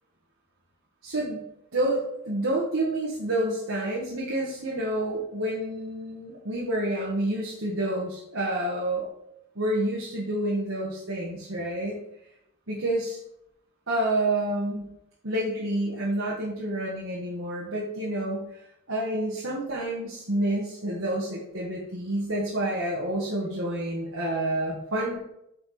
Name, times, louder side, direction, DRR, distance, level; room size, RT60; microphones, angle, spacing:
voice 1, 1.0-1.4 1.7-9.1 9.5-12.0 12.7-13.2 13.9-14.9 15.2-18.6 18.9-25.2, right 1 dB, 75° right, -4 dB, 1.5 m, -29 dB
8.9 x 4.5 x 4.3 m, 0.80 s
head